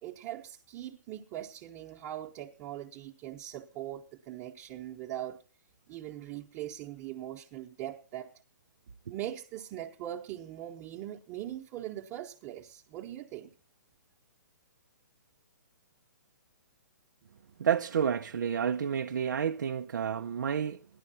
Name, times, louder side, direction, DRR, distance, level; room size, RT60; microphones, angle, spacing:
voice 1, 0.0-5.4 5.9-8.3 9.1-13.5, right 12 dB, 30° right, 1.0 m, -41 dB
voice 2, 17.6-20.9, right 8 dB, 70° right, 0.5 m, -30 dB
14.0 x 11.0 x 4.2 m
hypercardioid pair, 135°, 10 cm